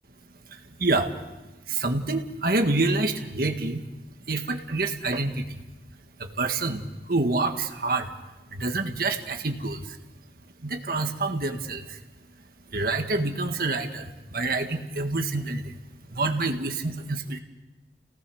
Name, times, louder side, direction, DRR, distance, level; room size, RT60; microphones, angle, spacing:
voice 1, 0.5-1.1 1.7-3.8 4.3-5.6 6.2-8.1 8.5-10.0 10.6-12.0 12.7-15.8 16.1-17.4, right 2 dB, 55° right, 5 dB, 1.8 m, -27 dB
29.0 x 18.5 x 6.4 m, 1.1 s
head